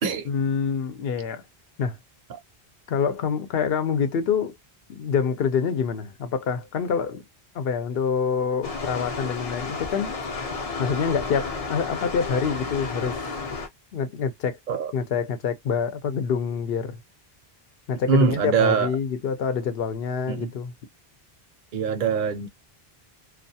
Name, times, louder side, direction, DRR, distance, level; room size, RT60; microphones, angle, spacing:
voice 1, 0.3-1.4 1.8-2.0 2.9-4.5 4.9-7.2 7.5-10.1 10.8-13.2 13.9-14.6 14.9-17.0 17.9-20.7, left 6 dB, 75° left, 0.8 m, -26 dB
sound 1, 8.6-13.7, left 4 dB, 40° left, 0.6 m, -32 dB
voice 2, 18.1-18.9 20.3-20.5 21.7-22.5, right 6 dB, 60° right, 0.7 m, -23 dB
2.3 x 2.2 x 2.6 m
omnidirectional pair, 1.0 m